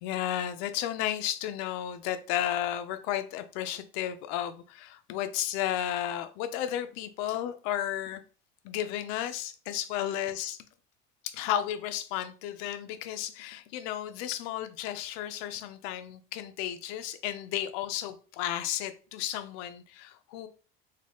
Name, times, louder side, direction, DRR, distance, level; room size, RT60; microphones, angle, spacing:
voice 1, 0.0-8.2 8.6-10.6 11.2-20.5, left 11 dB, 75° left, 9 dB, 0.5 m, -33 dB
3.7 x 2.3 x 3.5 m, 0.37 s
cardioid pair, 165°, 20 cm